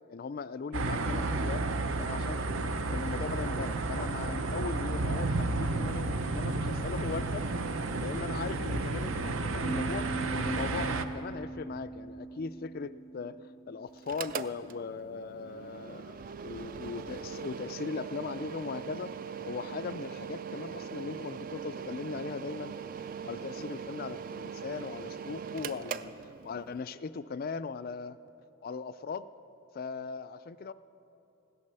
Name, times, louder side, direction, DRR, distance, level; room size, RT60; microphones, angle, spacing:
voice 1, 0.1-1.7 2.0-7.5 8.0-13.4 13.7-19.1 19.4-22.7 23.2-26.1 26.4-28.2 28.6-29.3 29.7-30.7, left 5 dB, 45° left, 14 dB, 0.3 m, -39 dB
sound 1, 0.7-11.0, right 3 dB, 65° right, 0.7 m, -32 dB
sound 2, 9.6-14.8, right 3 dB, 5° right, 0.6 m, -41 dB
Mechanical fan, 14.0-26.8, right 6 dB, 40° right, 0.3 m, -41 dB
16.0 x 12.0 x 6.8 m, 3.0 s
head